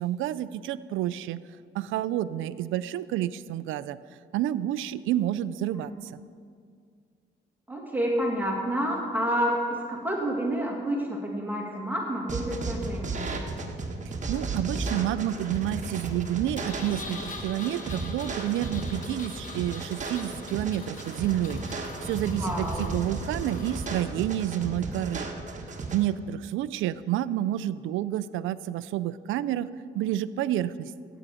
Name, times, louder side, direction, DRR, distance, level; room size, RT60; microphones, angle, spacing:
voice 1, 0.0-1.4 1.7-4.0 4.3-6.2 14.3-25.3 25.9-29.7 29.9-30.9, right 12 dB, 85° right, 16 dB, 0.4 m, -29 dB
voice 2, 7.7-13.4 22.3-22.9, equal, 10° right, -2 dB, 2.1 m, -29 dB
sound 1, 12.3-26.0, right 3 dB, 40° right, 1.5 m, -34 dB
Engine, 16.5-24.0, left 3 dB, 40° left, 1.6 m, -43 dB
14.5 x 8.9 x 5.0 m, 2.2 s
cardioid pair, 90°, 20 cm